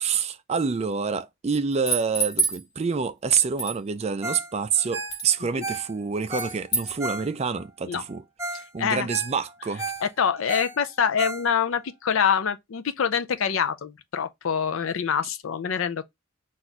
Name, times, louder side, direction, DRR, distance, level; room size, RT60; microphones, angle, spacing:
voice 1, 0.0-8.2 8.5-9.9, right 6 dB, 30° right, 0.4 m, -27 dB
sound 1, 1.7-2.6 3.6-3.8 5.1-5.3 6.4-7.0, right 3 dB, 50° left, 1.5 m, -26 dB
Ringtone, 4.2-4.5 4.8-7.7 8.1-8.2 8.4-8.7 8.9-11.8 12.3-12.4, right 2 dB, 15° right, 1.0 m, -34 dB
voice 2, 10.0-16.0, left 7 dB, 65° left, 0.5 m, -25 dB
4.1 x 2.5 x 4.4 m
head